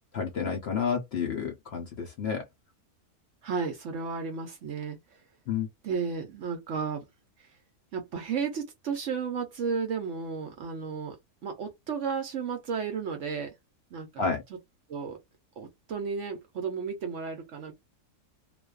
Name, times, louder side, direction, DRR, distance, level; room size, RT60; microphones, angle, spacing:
voice 1, 0.1-2.4 5.5-5.7 14.2-14.4, left 6 dB, 55° left, 0.8 m, -30 dB
voice 2, 3.4-5.0 5.8-7.1 7.4-7.5 7.9-11.2 11.4-13.5 13.9-14.2 14.9-15.2 15.6-17.7, right 5 dB, 60° right, 0.8 m, -33 dB
2.5 x 2.2 x 2.2 m
omnidirectional pair, 1.6 m